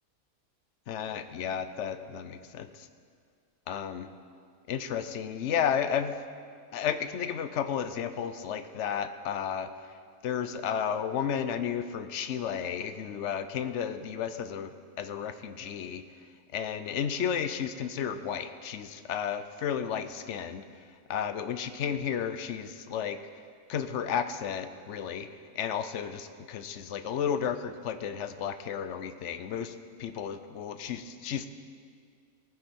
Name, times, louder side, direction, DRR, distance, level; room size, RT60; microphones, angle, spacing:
voice 1, 0.9-2.9 3.7-4.1 4.7-6.2 6.7-9.7 10.2-16.0 16.5-20.6 21.1-23.2 23.7-25.3 25.5-31.5, left 8 dB, 60° left, 10 dB, 0.9 m, -33 dB
18.5 x 9.8 x 4.4 m, 2.1 s
omnidirectional pair, 1.5 m